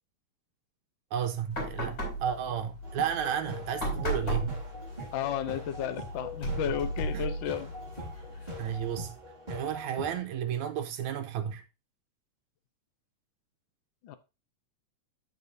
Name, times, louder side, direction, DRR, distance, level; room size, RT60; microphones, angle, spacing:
voice 1, 1.1-4.6 7.1-7.3 8.6-9.2 9.5-11.6, right 8 dB, 85° right, 2.1 m, -33 dB
sound 1, 1.5-9.0, right 1 dB, 35° left, 5.2 m, -36 dB
sound 2, 2.8-10.2, equal, 20° right, 1.3 m, -43 dB
voice 2, 5.1-7.7 8.0-8.1 14.0-14.1, left 9 dB, 80° left, 1.1 m, -33 dB
14.5 x 5.5 x 2.7 m
omnidirectional pair, 3.3 m